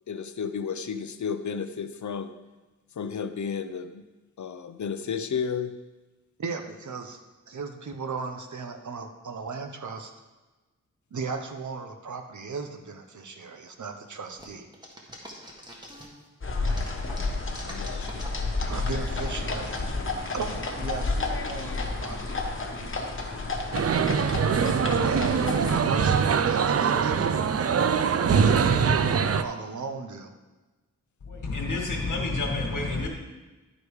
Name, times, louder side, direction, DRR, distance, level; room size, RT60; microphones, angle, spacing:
voice 1, 0.1-2.3 3.0-4.0 4.4-5.8 17.6-18.2, left 6 dB, 70° left, 10 dB, 0.7 m, -32 dB
voice 2, 6.4-7.2 7.5-10.1 11.1-14.7 18.7-19.8 20.3-22.4 24.9-25.2 25.7-27.4 28.3-30.3, right 4 dB, 70° right, 5 dB, 1.0 m, -36 dB
sound 1, 14.4-16.3 16.6-19.8, equal, 15° right, 1.6 m, -44 dB
sound 2, 16.4-25.8, left 3 dB, 40° left, 1.2 m, -31 dB
sound 3, 23.7-29.4, right 6 dB, 50° right, 0.5 m, -23 dB
voice 3, 31.2-33.1, left 3 dB, 85° left, 1 dB, 1.7 m, -29 dB
11.5 x 5.1 x 4.9 m, 1.2 s
wide cardioid pair, 95°, 30 cm